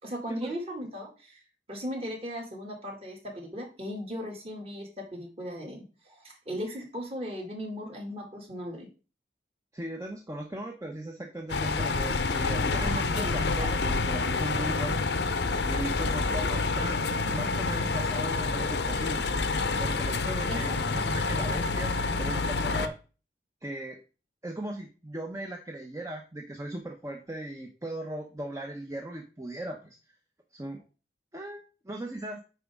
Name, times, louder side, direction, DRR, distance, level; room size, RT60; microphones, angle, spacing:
voice 1, 0.0-1.4 1.7-8.9 12.7-13.7 20.5-21.0, equal, 35° right, 1 dB, 2.2 m, -37 dB
voice 2, 9.7-15.0 15.7-19.3 19.8-23.0 23.6-24.0 24.4-30.0 30.5-30.8 31.3-32.4, right 1 dB, 20° right, 2 dB, 0.8 m, -38 dB
sound 1, 11.5-22.9, left 3 dB, 75° left, 0.7 m, -28 dB
9.2 x 4.9 x 3.6 m, 0.34 s
head